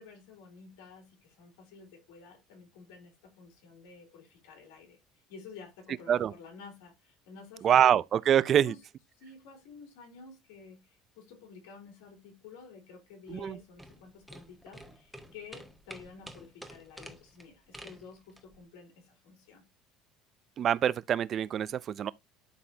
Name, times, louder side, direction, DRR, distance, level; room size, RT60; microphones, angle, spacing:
voice 1, 0.0-5.0 5.3-8.0 8.5-8.8 9.2-19.6, left 5 dB, 85° left, 3.3 m, -51 dB
voice 2, 7.6-8.7 13.3-13.6 20.6-22.1, right 9 dB, 45° right, 0.5 m, -25 dB
sound 1, 13.3-18.6, equal, ahead, 1.3 m, -50 dB
11.5 x 4.2 x 2.8 m
supercardioid pair, 110°, 0 cm